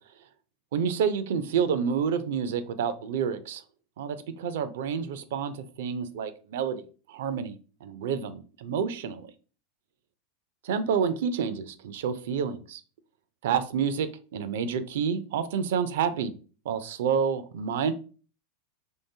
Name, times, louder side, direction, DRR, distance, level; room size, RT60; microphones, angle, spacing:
voice 1, 0.7-3.6 4.0-9.3 10.7-12.8 13.4-16.3 16.7-17.9, right 7 dB, 65° right, 13 dB, 0.4 m, -29 dB
3.1 x 2.7 x 2.7 m, 0.37 s
hypercardioid pair, 90°, 0 cm